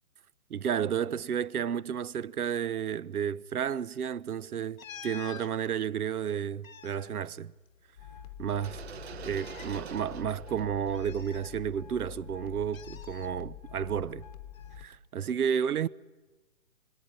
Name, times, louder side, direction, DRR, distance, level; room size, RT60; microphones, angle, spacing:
voice 1, 0.5-7.5 8.4-8.8 9.2-14.3 14.8-15.9, right 8 dB, 85° right, 0.9 m, -32 dB
sound 1, 4.8-5.5 6.4-8.1 8.4-8.5 9.3-9.8 10.9-12.0 12.7-13.3 14.5-14.8, left 8 dB, 65° left, 1.3 m, -48 dB
sound 2, 8.0-14.9, left 10 dB, 25° left, 1.1 m, -46 dB
sound 3, 8.5-12.4, right 7 dB, 45° right, 1.1 m, -46 dB
25.0 x 25.0 x 8.9 m
hypercardioid pair, 170°, 43 cm